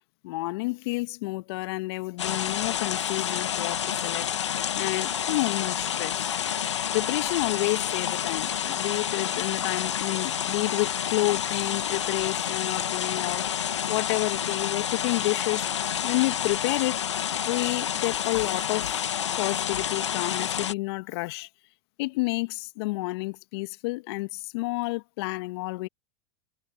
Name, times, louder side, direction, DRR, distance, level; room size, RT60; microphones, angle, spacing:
voice 1, 0.2-4.3 4.7-6.4 6.9-13.5 13.9-15.7 16.0-17.1 17.5-19.0 19.4-21.5 22.0-25.9, left 23 dB, 65° left, 2.3 m, -30 dB
sound 1, 2.2-20.7, left 9 dB, 80° left, 2.3 m, -29 dB
hypercardioid pair, 90°, 15 cm